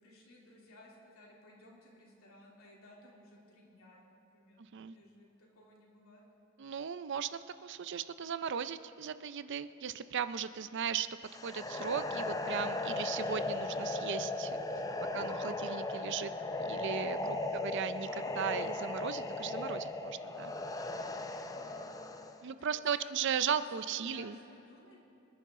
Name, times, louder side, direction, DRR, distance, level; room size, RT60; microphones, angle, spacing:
voice 1, 0.0-4.6 4.9-6.3 17.3-17.6 21.5-21.9 22.4-23.6 23.9-25.0, left 1 dB, 80° left, -3 dB, 3.0 m, -58 dB
voice 2, 6.6-11.1 11.4-14.6 15.1-16.3 16.7-20.5 22.4-24.4, right 7 dB, 55° right, 13 dB, 0.5 m, -37 dB
sound 1, 11.3-22.4, left 2 dB, 15° left, 0.5 m, -37 dB
26.5 x 9.7 x 3.7 m, 2.8 s
head